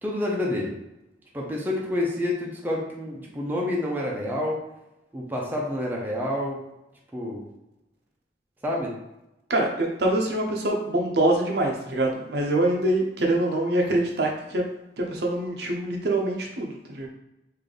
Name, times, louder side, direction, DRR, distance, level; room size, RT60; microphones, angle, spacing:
voice 1, 0.0-0.7 1.3-4.6 5.1-6.6 7.1-7.4 8.6-9.0, left 1 dB, 10° right, -3 dB, 0.6 m, -28 dB
voice 2, 9.5-14.6 15.0-17.1, right 1 dB, 65° right, 1 dB, 0.7 m, -24 dB
3.4 x 2.7 x 3.8 m, 0.93 s
head